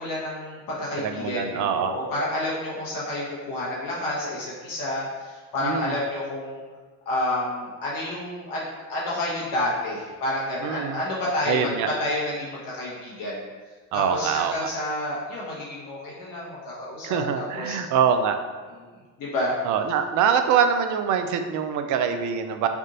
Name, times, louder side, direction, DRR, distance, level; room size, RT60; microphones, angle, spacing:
voice 1, 0.0-6.6 7.0-11.6 11.9-13.5 13.9-17.8 18.8-18.9 19.2-19.5, left 1 dB, 55° left, -6 dB, 1.2 m, -29 dB
voice 2, 1.0-1.9 5.6-6.0 10.6-11.0 11.5-11.9 13.9-14.7 17.0-18.4 19.6-22.7, right 7 dB, 45° right, 7 dB, 0.5 m, -24 dB
3.5 x 2.5 x 3.9 m, 1.4 s
hypercardioid pair, 70°, 42 cm